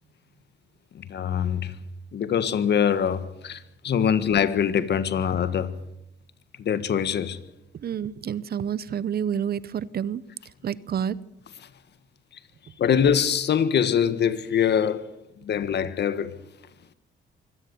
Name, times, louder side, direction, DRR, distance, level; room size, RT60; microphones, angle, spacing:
voice 1, 0.9-1.8 2.1-5.7 6.6-7.4 12.8-15.1 15.4-16.3, left 8 dB, 60° left, 1.6 m, -23 dB
voice 2, 7.8-10.2 10.6-11.2, right 8 dB, 50° right, 0.9 m, -29 dB
24.5 x 17.0 x 7.1 m
cardioid pair, 90°, 20 cm